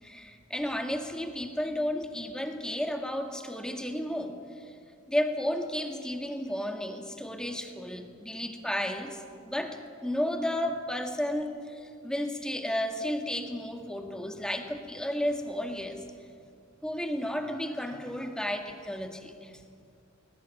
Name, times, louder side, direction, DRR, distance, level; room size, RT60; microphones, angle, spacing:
voice 1, 0.0-4.8 5.1-16.0 16.8-19.6, equal, 5° left, 4 dB, 1.9 m, -33 dB
20.0 x 19.0 x 9.5 m, 2.3 s
head